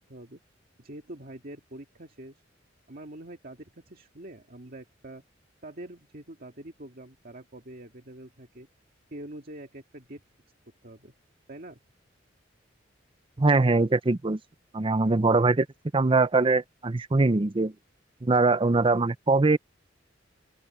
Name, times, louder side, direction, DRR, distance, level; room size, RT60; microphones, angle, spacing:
voice 1, 0.1-0.4 0.8-2.4 2.9-5.2 5.6-8.7 9.1-10.2 10.8-11.1 11.5-11.8, right 1 dB, 50° right, 2.1 m, -44 dB
voice 2, 13.4-14.4 14.7-15.7 15.9-17.7 18.2-19.6, right 3 dB, 30° right, 0.6 m, -22 dB
open air
head